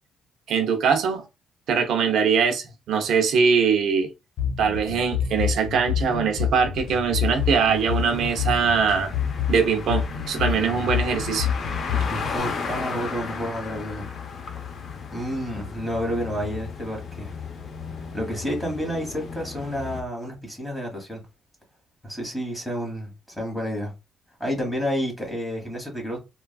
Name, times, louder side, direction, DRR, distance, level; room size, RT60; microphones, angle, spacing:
voice 1, 0.5-1.3 1.7-4.1 4.6-9.1 9.5-11.5, right 6 dB, 70° right, 0.5 m, -22 dB
sound 1, 4.4-12.4, left 8 dB, 80° left, 0.8 m, -28 dB
sound 2, 6.8-20.0, left 5 dB, 50° left, 0.6 m, -35 dB
voice 2, 11.9-14.1 15.1-17.3 18.1-21.2 22.0-23.9 24.4-26.2, equal, 5° left, 1.3 m, -30 dB
3.2 x 2.3 x 2.3 m
cardioid pair, 110°, 0 cm